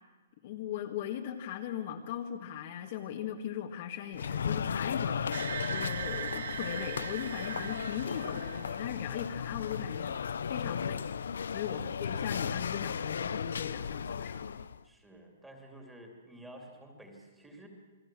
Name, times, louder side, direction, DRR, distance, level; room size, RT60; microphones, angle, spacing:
voice 1, 0.4-10.2 10.5-14.6, left 9 dB, 35° left, 3 dB, 1.8 m, -39 dB
sound 1, 4.1-14.8, left 7 dB, 85° left, 0.8 m, -35 dB
sound 2, 5.3-9.1, right 8 dB, 55° right, 0.7 m, -40 dB
voice 2, 14.8-17.7, right 1 dB, 5° right, 2 dB, 2.9 m, -51 dB
28.5 x 21.0 x 7.6 m, 1.3 s
hypercardioid pair, 175°, 0 cm